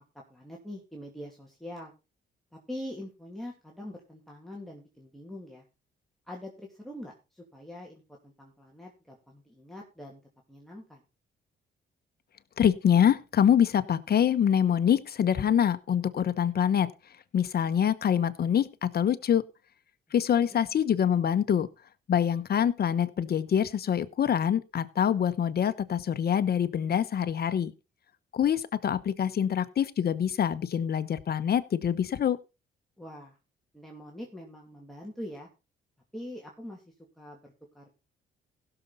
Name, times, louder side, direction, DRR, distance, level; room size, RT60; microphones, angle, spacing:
voice 1, 0.3-1.9 2.5-5.6 6.3-10.2 10.5-11.0 20.5-20.6 33.0-33.4 33.7-35.5 36.1-36.8 37.2-37.9, left 1 dB, ahead, -1 dB, 2.6 m, -43 dB
voice 2, 12.6-16.9 17.3-19.4 20.1-21.7 22.1-27.7 28.3-32.4, left 9 dB, 50° left, 12 dB, 1.1 m, -25 dB
16.5 x 6.8 x 4.0 m, 0.29 s
cardioid pair, 90°, 20 cm